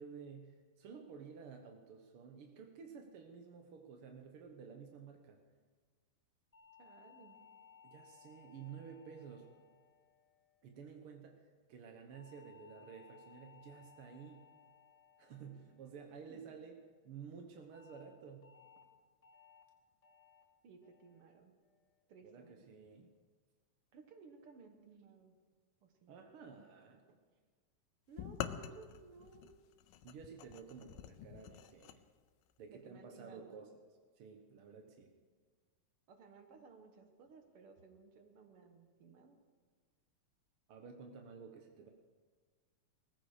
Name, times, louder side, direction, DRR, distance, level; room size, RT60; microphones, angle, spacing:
voice 1, 0.0-5.4 7.8-9.5 10.6-14.5 15.2-16.8 17.0-18.6 22.2-23.1 26.1-27.2 30.0-32.0 32.6-33.7 34.2-35.1 40.7-41.9, right 6 dB, 70° right, 4 dB, 1.3 m, -52 dB
sound 1, 6.5-11.0 12.1-16.6 17.7-18.0 18.4-18.8 19.2-19.6 20.0-20.4 20.8-21.2 21.6-22.0, left 6 dB, 15° left, 1.7 m, -63 dB
voice 2, 6.8-7.4 16.3-16.4 20.6-21.5 22.1-22.8 23.9-25.4 25.8-26.2 28.1-29.6 32.7-33.7 36.1-39.4, right 5 dB, 55° right, 6 dB, 1.7 m, -58 dB
sound 2, 28.2-32.0, left 11 dB, 85° left, 2.4 m, -46 dB
19.5 x 15.0 x 5.0 m, 1.5 s
omnidirectional pair, 4.0 m